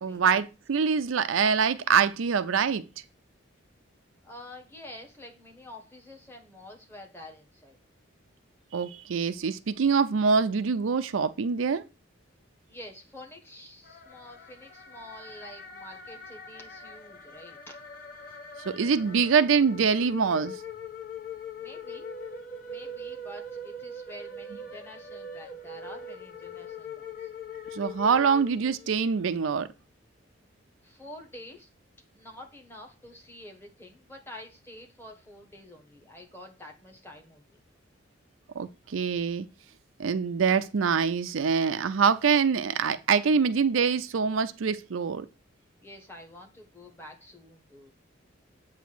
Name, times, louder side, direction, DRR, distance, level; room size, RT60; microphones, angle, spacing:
voice 1, 0.0-2.8 8.7-11.8 18.7-20.6 27.7-29.7 38.6-39.5 40.0-45.3, right 6 dB, 85° right, 0.5 m, -24 dB
voice 2, 4.2-7.8 12.7-17.6 21.6-22.1 22.6-27.3 30.8-31.7 32.1-37.6 45.8-47.9, left 1 dB, 10° left, 1.3 m, -48 dB
sound 1, 13.8-29.1, left 2 dB, 45° left, 1.0 m, -42 dB
8.1 x 2.7 x 6.0 m
head